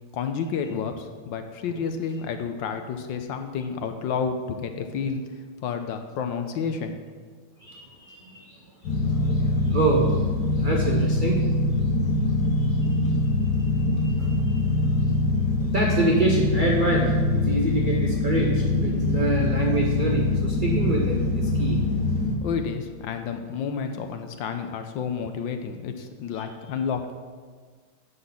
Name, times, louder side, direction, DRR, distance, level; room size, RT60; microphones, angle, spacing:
voice 1, 0.1-5.2 5.6-7.0 22.4-27.1, left 6 dB, 70° left, 7 dB, 1.3 m, -30 dB
voice 2, 7.6-8.6 8.9-10.2 10.5-11.5 12.6-13.1 13.4-15.1 15.7-21.8, right 2 dB, 65° right, -2 dB, 0.5 m, -27 dB
sound 1, 8.8-22.3, left 2 dB, 55° left, 1.6 m, -23 dB
11.0 x 4.1 x 7.1 m, 1.5 s
omnidirectional pair, 2.3 m